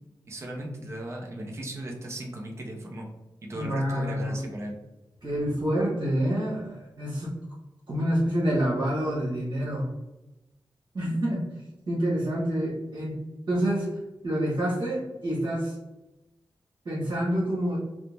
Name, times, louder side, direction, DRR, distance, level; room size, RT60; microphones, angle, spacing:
voice 1, 0.3-3.1 3.4-4.7, right 1 dB, 35° right, 0 dB, 0.5 m, -37 dB
voice 2, 3.5-4.4 5.2-7.4 7.9-9.9 10.9-11.5 11.9-13.9 14.2-15.7 16.8-17.8, equal, 55° right, -7 dB, 1.0 m, -27 dB
2.6 x 2.0 x 3.2 m, 1.0 s
wide cardioid pair, 160°, 8 cm